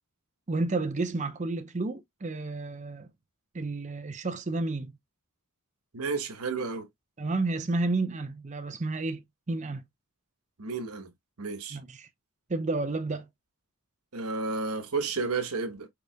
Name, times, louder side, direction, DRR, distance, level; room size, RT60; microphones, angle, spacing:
voice 1, 0.5-3.1 3.5-4.9 7.2-9.2 9.5-9.8 11.7-12.1 12.5-13.3, right 3 dB, 35° right, 0.6 m, -31 dB
voice 2, 5.9-6.9 10.6-11.1 11.4-11.8 14.1-15.9, right 4 dB, 90° right, 1.2 m, -32 dB
4.8 x 4.8 x 2.2 m
head